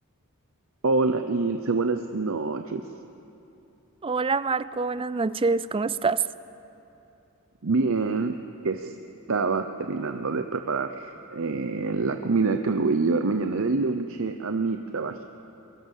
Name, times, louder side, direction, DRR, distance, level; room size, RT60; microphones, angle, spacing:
voice 1, 0.8-2.9 7.6-8.4 8.6-8.9 9.3-15.3, right 3 dB, 65° right, 8 dB, 0.7 m, -26 dB
voice 2, 4.0-6.2, right 4 dB, 25° right, 16 dB, 0.4 m, -25 dB
23.0 x 18.5 x 7.4 m, 2.9 s
head